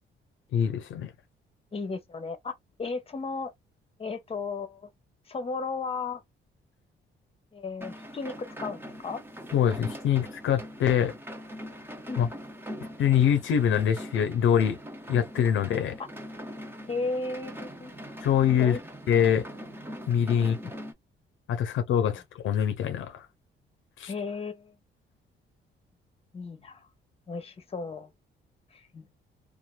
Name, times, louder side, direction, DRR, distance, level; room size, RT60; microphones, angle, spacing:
voice 1, 0.5-1.1 9.5-11.1 12.2-12.3 13.0-14.8 15.1-16.0 18.2-18.8 19.1-19.5 20.1-20.6 21.5-23.3 24.0-24.1, left 9 dB, 75° left, 0.7 m, -24 dB
voice 2, 1.7-2.5 2.8-3.5 4.0-4.9 5.3-6.2 7.5-9.2 12.1-12.2 16.9-17.9 18.6-18.8 20.4-20.7 24.1-24.7 26.3-26.8 27.3-28.1 28.7-29.1, left 4 dB, 30° left, 1.0 m, -35 dB
sound 1, 7.8-20.9, equal, 10° right, 1.1 m, -42 dB
2.8 x 2.5 x 2.2 m
cardioid pair, 90°, 20 cm